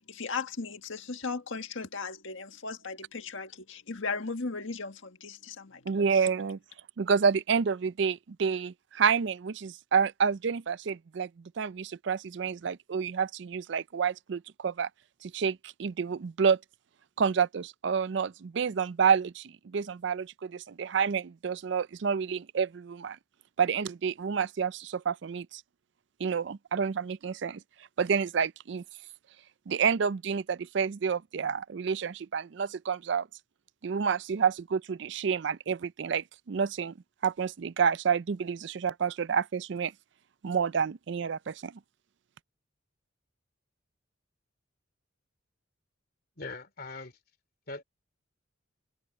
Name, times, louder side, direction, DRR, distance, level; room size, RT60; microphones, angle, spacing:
voice 1, 0.1-6.0, left 4 dB, 70° left, 1.7 m, -37 dB
voice 2, 5.9-6.6 7.0-11.3 11.6-14.9 15.2-16.6 17.2-23.2 23.6-25.6 26.2-27.6 28.0-28.8 29.7-33.3 33.8-36.9 37.2-39.9 40.4-41.7, right 6 dB, 60° right, 0.4 m, -29 dB
voice 3, 46.4-47.1 47.7-47.8, left 3 dB, 50° left, 2.7 m, -40 dB
head